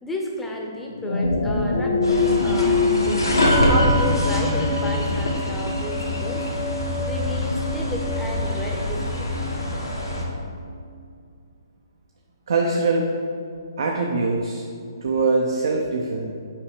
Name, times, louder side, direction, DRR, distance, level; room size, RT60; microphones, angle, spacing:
voice 1, 0.0-3.2 3.7-6.4 7.0-9.6, left 1 dB, 5° left, 0 dB, 0.8 m, -33 dB
sound 1, 0.9-5.5, left 3 dB, 55° left, 0.8 m, -23 dB
sound 2, 2.0-10.2, left 1 dB, 85° left, 1.5 m, -24 dB
voice 2, 12.5-13.1 13.8-14.6 15.0-16.3, right 3 dB, 60° right, 0 dB, 0.7 m, -22 dB
5.7 x 4.7 x 4.9 m, 2.3 s
figure-of-eight pair, 135°, 2 cm